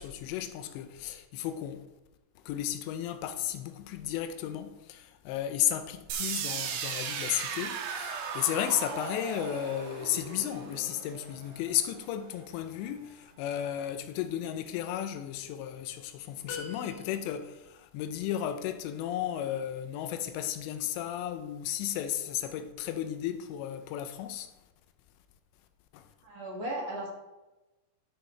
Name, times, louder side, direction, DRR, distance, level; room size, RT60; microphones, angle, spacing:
voice 1, 0.0-1.8 2.5-24.5 25.9-26.1, left 11 dB, 85° left, 2.8 m, -34 dB
sound 1, 6.1-12.0, right 6 dB, 75° right, 2.9 m, -37 dB
sound 2, 16.5-17.6, left 4 dB, 65° left, 1.9 m, -43 dB
voice 2, 26.2-27.1, right 1 dB, 55° right, 2.8 m, -36 dB
12.0 x 6.3 x 3.2 m
omnidirectional pair, 5.2 m